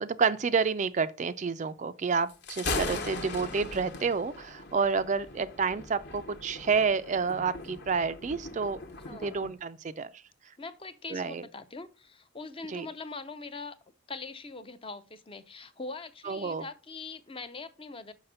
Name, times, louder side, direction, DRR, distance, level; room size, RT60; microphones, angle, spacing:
voice 1, 0.0-8.8 9.1-10.1 11.1-11.4 12.7-12.9 16.2-16.6, right 5 dB, 35° right, 0.3 m, -29 dB
Thunder, 2.3-9.5, left 3 dB, 50° left, 1.1 m, -39 dB
voice 2, 9.0-9.4 10.6-13.8 14.1-18.1, left 3 dB, 25° left, 0.5 m, -42 dB
5.8 x 5.7 x 5.4 m
head